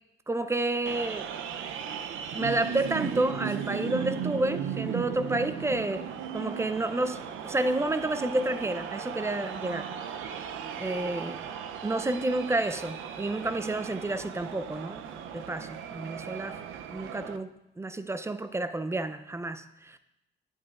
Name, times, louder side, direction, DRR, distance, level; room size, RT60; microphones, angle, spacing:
voice 1, 0.3-1.3 2.3-6.1 6.3-9.9 10.8-11.4 11.8-16.6 16.9-17.5 17.8-20.0, right 2 dB, 15° right, 11 dB, 0.4 m, -30 dB
sound 1, 0.9-17.4, right 8 dB, 85° right, 0.5 m, -36 dB
9.0 x 8.8 x 2.4 m, 0.87 s
cardioid pair, 90°, 20 cm